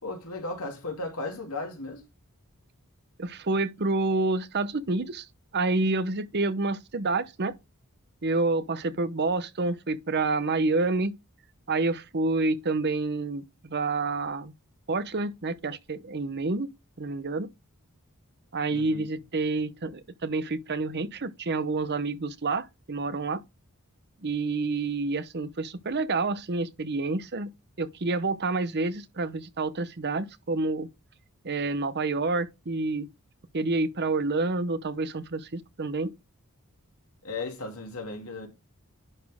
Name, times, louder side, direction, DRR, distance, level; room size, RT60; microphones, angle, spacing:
voice 1, 0.0-2.0 18.7-19.1 37.2-38.5, left 3 dB, 75° left, 2.9 m, -35 dB
voice 2, 3.2-5.3 5.5-7.6 8.2-11.2 11.7-14.5 14.9-16.7 17.0-17.5 18.5-23.4 24.2-27.5 27.8-30.9 31.4-33.1 33.5-36.1, right 3 dB, 50° right, 0.8 m, -28 dB
11.0 x 4.2 x 3.6 m
head